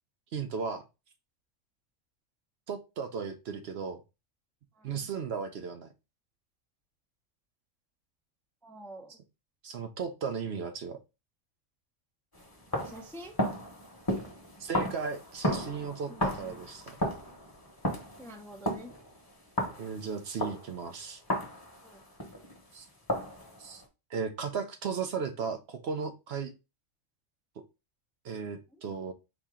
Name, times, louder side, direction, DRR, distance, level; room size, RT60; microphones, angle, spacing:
voice 1, 0.3-0.8 2.7-4.0 4.8-5.9 9.6-11.0 14.6-17.0 19.8-21.2 22.7-22.9 23.6-23.8 24.1-26.5 27.6-27.7 28.2-29.1, right 5 dB, 65° right, 7 dB, 0.9 m, -35 dB
voice 2, 4.8-5.1 8.6-9.1 12.7-13.3 16.1-16.6 18.2-18.9 21.8-22.0, right 1 dB, 5° left, 4 dB, 0.5 m, -47 dB
sound 1, 12.3-22.6 23.1-23.8, equal, 20° left, 1.0 m, -35 dB
4.8 x 2.8 x 3.5 m, 0.26 s
omnidirectional pair, 1.3 m